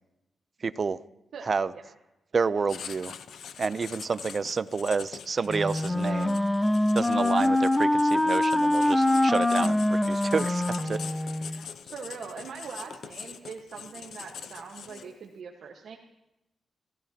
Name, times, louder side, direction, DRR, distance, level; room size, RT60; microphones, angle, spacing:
voice 1, 0.6-1.0 1.4-1.7 2.3-3.1 3.6-6.4 6.9-11.0, right 5 dB, 45° right, 16 dB, 0.5 m, -29 dB
Writing, 2.7-15.3, left 7 dB, 80° left, 0.7 m, -43 dB
Wind instrument woodwind instrument, 5.5-11.6, left 1 dB, 15° left, 0.7 m, -24 dB
voice 2, 11.9-16.0, right 5 dB, 75° right, 0 dB, 1.3 m, -42 dB
28.0 x 15.5 x 2.9 m, 0.91 s
cardioid pair, 105°, 0 cm